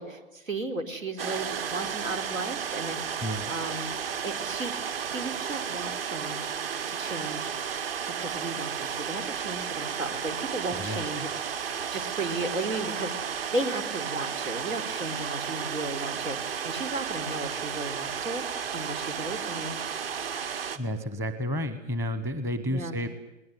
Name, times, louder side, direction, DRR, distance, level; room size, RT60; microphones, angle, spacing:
voice 1, 0.0-4.0 4.2-6.5 6.9-7.5 8.2-11.3 11.6-13.2 13.5-18.4 18.7-19.8 22.7-23.0, right 2 dB, 85° right, 9 dB, 4.4 m, -35 dB
sound 1, 1.2-20.8, right 7 dB, 45° right, 2.1 m, -33 dB
voice 2, 20.8-23.1, equal, 5° right, 10 dB, 1.0 m, -31 dB
21.5 x 20.0 x 9.5 m, 1.0 s
hypercardioid pair, 145°, 39 cm